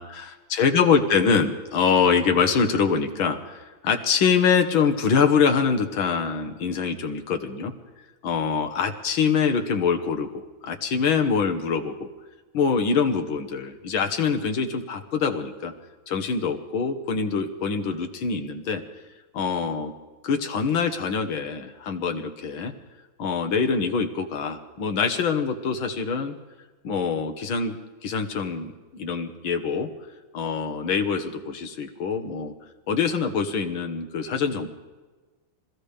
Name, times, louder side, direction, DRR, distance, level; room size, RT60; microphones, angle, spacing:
voice 1, 0.5-7.7 8.2-12.1 12.5-15.7 16.1-18.8 19.3-19.9 20.2-22.7 23.2-26.3 26.8-29.9 30.3-32.5 32.9-34.7, left 5 dB, 80° left, 6 dB, 2.1 m, -24 dB
27.0 x 15.0 x 3.4 m, 1.3 s
omnidirectional pair, 2.2 m